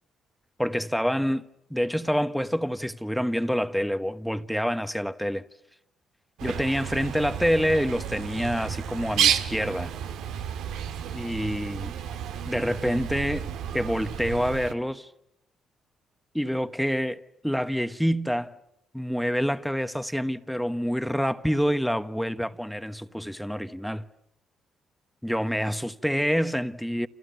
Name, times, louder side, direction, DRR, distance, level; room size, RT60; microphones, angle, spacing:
voice 1, 0.6-1.4 1.7-5.4 6.4-9.9 11.1-11.9 12.5-13.5 13.7-15.1 16.3-18.5 18.9-24.0 25.2-27.1, equal, ahead, 1.2 m, -27 dB
Bird, 6.4-14.7, right 9 dB, 90° right, 1.8 m, -31 dB
29.5 x 28.5 x 6.8 m
cardioid pair, 90°, 0 cm